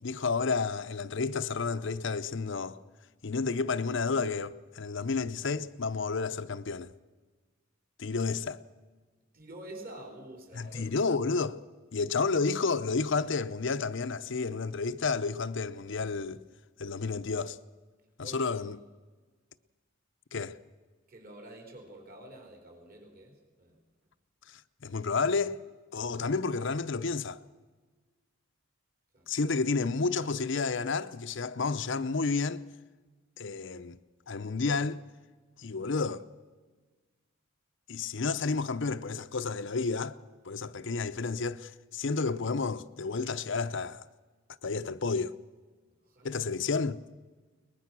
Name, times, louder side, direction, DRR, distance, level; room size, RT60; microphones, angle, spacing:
voice 1, 0.0-2.8 3.2-6.9 8.0-8.6 10.5-11.6 11.9-16.4 16.8-17.6 18.2-18.8 20.3-20.6 24.5-25.6 25.9-27.4 29.3-32.6 33.4-34.0 34.3-35.0 35.6-36.3 37.9-40.2 40.4-44.0 44.6-45.3 46.2-47.0, left 4 dB, 60° left, 0.7 m, -31 dB
voice 2, 9.3-11.1 18.2-18.6 21.1-23.3 23.6-23.7 29.1-29.3 46.0-46.4, right 1 dB, 45° right, 4.3 m, -48 dB
22.5 x 20.5 x 6.1 m
head